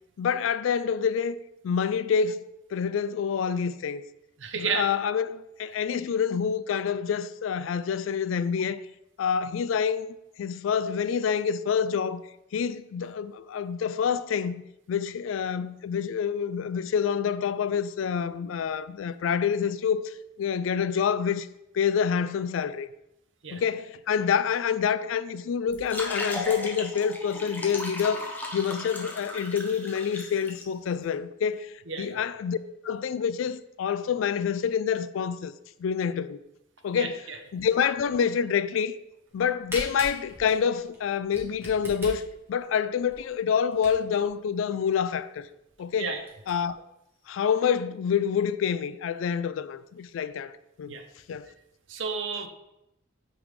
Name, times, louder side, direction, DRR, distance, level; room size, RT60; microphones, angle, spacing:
voice 1, 0.2-1.4 1.6-2.4 2.7-4.0 4.6-8.8 9.2-10.1 10.4-12.2 12.5-14.6 14.9-21.5 21.7-22.9 23.5-32.6 32.8-35.5 35.8-36.4 36.8-37.2 37.5-38.9 39.3-45.5 45.8-46.2 46.5-46.8 47.3-51.0 51.3-51.5, left 7 dB, 80° left, 0.3 m, -27 dB
voice 2, 4.4-4.9 23.4-23.6 31.9-32.2 36.9-37.4 46.0-46.2 50.9-51.0 51.9-52.5, right 5 dB, 70° right, 0.7 m, -32 dB
sound 1, 25.7-30.6, left 2 dB, 10° left, 0.7 m, -36 dB
Camera, 39.3-44.3 44.8-44.9 45.1-45.2 45.7-45.8 46.1-46.5, equal, 10° right, 1.4 m, -41 dB
8.6 x 3.7 x 3.2 m
head